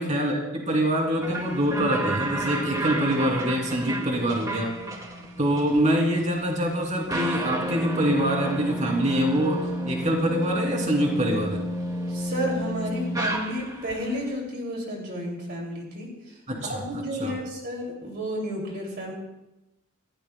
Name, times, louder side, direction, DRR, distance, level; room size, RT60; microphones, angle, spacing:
voice 1, 0.0-4.7 5.4-11.6 16.5-16.8 17.2-17.4, equal, 35° right, 0 dB, 3.2 m, -25 dB
sound 1, 1.2-14.0, right 1 dB, 20° right, 2.1 m, -31 dB
voice 2, 12.1-16.1 16.6-19.1, equal, 50° right, -1 dB, 2.9 m, -32 dB
26.0 x 15.5 x 2.3 m, 0.94 s
head